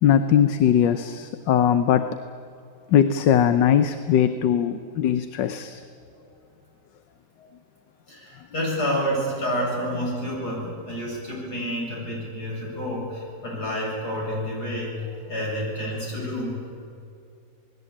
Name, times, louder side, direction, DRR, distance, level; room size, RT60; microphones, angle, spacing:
voice 1, 0.0-2.1 2.9-5.8, left 9 dB, 80° left, 10 dB, 1.5 m, -20 dB
voice 2, 8.1-14.9 15.3-16.6, equal, 60° left, -3 dB, 8.5 m, -29 dB
28.0 x 20.0 x 8.7 m, 2.5 s
omnidirectional pair, 1.9 m